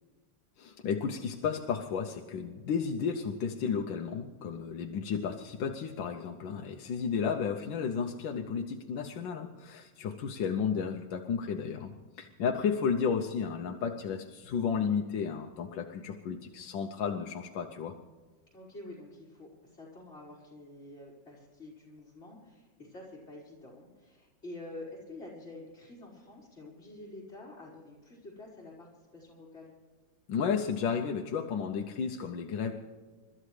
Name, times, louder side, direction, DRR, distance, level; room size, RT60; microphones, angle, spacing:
voice 1, 0.6-17.9 30.3-32.7, left 6 dB, 90° left, 3 dB, 1.6 m, -33 dB
voice 2, 18.5-29.7, left 2 dB, 35° left, -7 dB, 5.1 m, -48 dB
28.5 x 13.5 x 3.3 m, 1.4 s
omnidirectional pair, 2.0 m